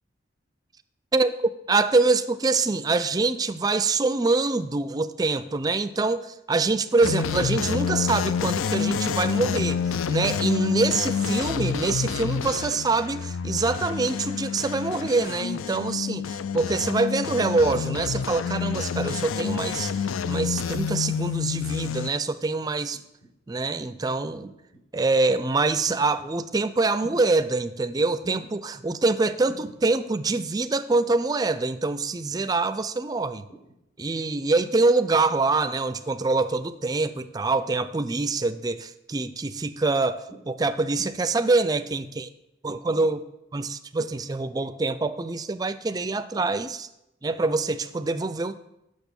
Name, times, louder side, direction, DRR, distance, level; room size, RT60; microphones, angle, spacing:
voice 1, 1.7-23.0 23.5-24.5 24.9-33.4 34.0-42.3 42.6-43.3 43.5-46.9 47.2-48.6, right 3 dB, 20° right, 12 dB, 0.4 m, -25 dB
sound 1, 7.0-22.1, left 6 dB, 90° left, 0.4 m, -28 dB
sound 2, 21.5-22.0 22.9-23.3 24.4-24.9 25.9-26.3 27.0-27.5 28.2-28.5 29.5-29.8 30.9-31.2 32.3-32.6 33.5-33.8 34.5-34.8 35.9-36.2 37.0-37.4 38.3-38.6 39.1-39.4 40.3-40.6 41.0-41.1, right 1 dB, 65° left, 3.5 m, -47 dB
8.2 x 6.5 x 6.8 m, 0.89 s
head